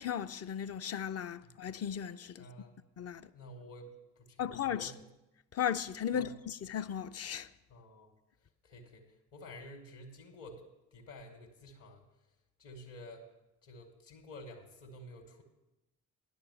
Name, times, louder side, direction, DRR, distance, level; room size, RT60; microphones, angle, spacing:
voice 1, 0.0-2.5 3.0-3.3 4.4-4.9 5.5-7.5, left 9 dB, 35° left, 0.5 m, -36 dB
voice 2, 2.4-2.8 3.3-5.0 6.1-6.3 7.7-8.1 8.6-10.6 10.9-12.0 12.6-13.3 13.6-15.4, left 1 dB, 60° left, 1.7 m, -51 dB
10.5 x 6.7 x 6.9 m
hypercardioid pair, 40°, 47 cm